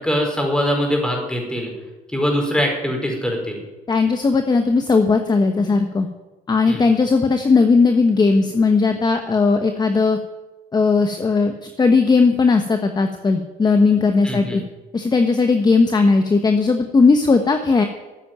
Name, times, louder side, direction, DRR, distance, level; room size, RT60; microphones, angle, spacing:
voice 1, 0.0-1.7 2.1-3.6 6.7-6.8 14.2-14.6, equal, 5° left, 1 dB, 5.0 m, -22 dB
voice 2, 3.9-6.1 6.5-10.2 10.7-14.6 14.9-17.8, left 4 dB, 25° left, 7 dB, 1.2 m, -17 dB
14.0 x 8.6 x 9.2 m, 1.1 s
cardioid pair, 110°, 17 cm